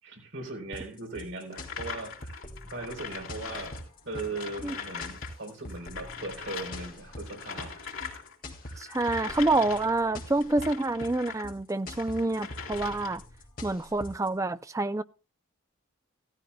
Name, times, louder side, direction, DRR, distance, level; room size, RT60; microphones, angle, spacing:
voice 1, 0.0-2.4 2.7-3.7 4.1-7.9 8.1-8.2 8.6-9.1, right 2 dB, 60° right, 3.8 m, -39 dB
sound 1, 0.7-14.3, left 1 dB, 45° left, 2.5 m, -44 dB
sound 2, 1.5-11.5 11.9-13.3, left 6 dB, 80° left, 3.8 m, -41 dB
voice 2, 8.8-13.2 13.6-15.0, right 2 dB, 15° right, 0.5 m, -27 dB
16.0 x 14.0 x 2.3 m
head